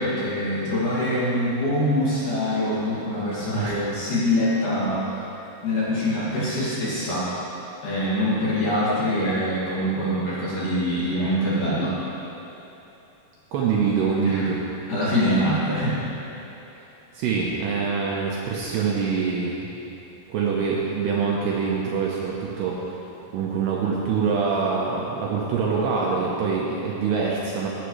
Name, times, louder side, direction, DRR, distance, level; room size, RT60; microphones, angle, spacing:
voice 1, 0.0-5.0 5.6-7.3 7.8-11.9 14.2-14.4 14.9-16.0, left 1 dB, 50° left, -10 dB, 3.2 m, -24 dB
voice 2, 13.5-14.6 16.7-16.9 17.1-19.7 20.3-22.9 23.3-27.7, right 5 dB, 75° right, -3 dB, 2.6 m, -25 dB
15.0 x 10.0 x 3.2 m, 3.0 s
omnidirectional pair, 5.5 m